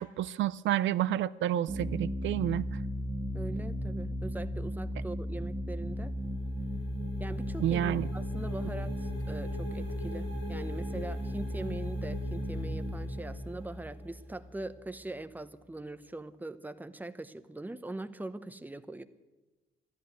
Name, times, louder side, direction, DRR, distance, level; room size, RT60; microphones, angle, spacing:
voice 1, 0.0-2.7 7.6-8.1, right 12 dB, 75° right, 0.4 m, -29 dB
sound 1, 1.7-15.0, equal, 35° right, 1.8 m, -35 dB
voice 2, 3.3-6.1 7.2-19.0, right 2 dB, 10° right, 0.9 m, -42 dB
sound 2, 5.7-14.4, left 2 dB, 80° left, 6.8 m, -49 dB
13.0 x 11.5 x 9.3 m
cardioid pair, 90°, 20 cm